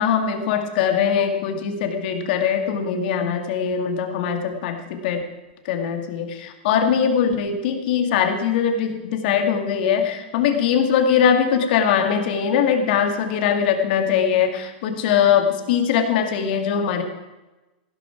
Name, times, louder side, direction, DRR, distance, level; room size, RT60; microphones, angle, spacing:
voice 1, 0.0-5.2 5.6-17.0, left 7 dB, 60° left, 5 dB, 2.3 m, -21 dB
16.0 x 13.0 x 4.7 m, 1.1 s
hypercardioid pair, 140°, 6 cm